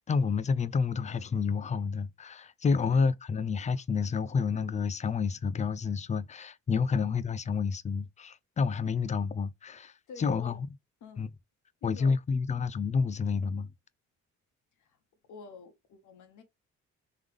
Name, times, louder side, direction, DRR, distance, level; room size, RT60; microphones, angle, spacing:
voice 1, 0.1-10.7 11.2-11.3 11.8-13.7, left 5 dB, 25° left, 0.4 m, -29 dB
voice 2, 10.1-10.6 11.0-11.2 11.8-12.1 14.8-15.0 15.3-16.4, left 4 dB, 80° left, 1.4 m, -49 dB
3.8 x 3.2 x 3.5 m
cardioid pair, 90°, 30 cm